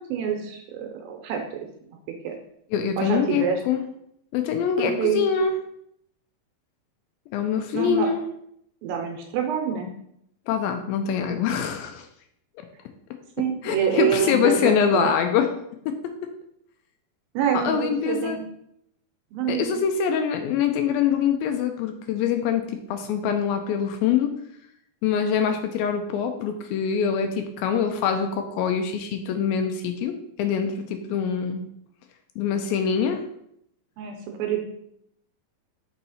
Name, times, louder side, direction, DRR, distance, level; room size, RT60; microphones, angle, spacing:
voice 1, 0.0-1.4 2.2-2.4 3.0-3.6 4.8-5.2 7.7-8.1 8.8-9.9 13.4-15.1 17.3-18.4 19.3-19.8 34.0-34.6, right 8 dB, 80° right, 3 dB, 2.4 m, -26 dB
voice 2, 2.7-3.8 4.3-5.6 7.3-8.2 10.5-12.1 13.6-15.5 15.9-16.3 17.5-18.4 19.5-24.3 25.0-31.7 32.4-33.2, left 7 dB, 80° left, 6 dB, 2.2 m, -24 dB
5.5 x 4.1 x 4.1 m, 0.73 s
omnidirectional pair, 4.4 m